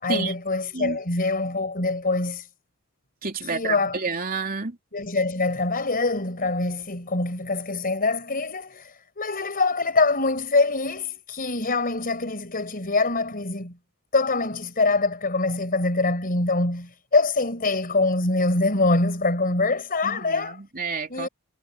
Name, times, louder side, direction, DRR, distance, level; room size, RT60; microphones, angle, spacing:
voice 1, 0.0-2.5 3.4-4.0 4.9-13.8 14.1-20.6 21.1-21.3, left 3 dB, 40° left, 5.1 m, -24 dB
voice 2, 3.2-4.7 20.0-21.3, right 4 dB, 40° right, 3.3 m, -29 dB
head